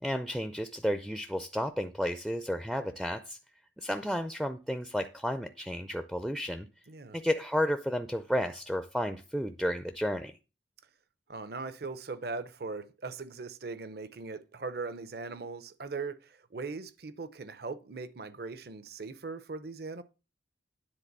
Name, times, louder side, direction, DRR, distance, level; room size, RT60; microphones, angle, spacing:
voice 1, 0.0-3.4 3.8-6.7 7.1-10.3, equal, ahead, 0.4 m, -32 dB
voice 2, 6.9-7.2 11.3-20.0, right 4 dB, 55° right, 0.7 m, -40 dB
9.9 x 3.9 x 6.7 m
head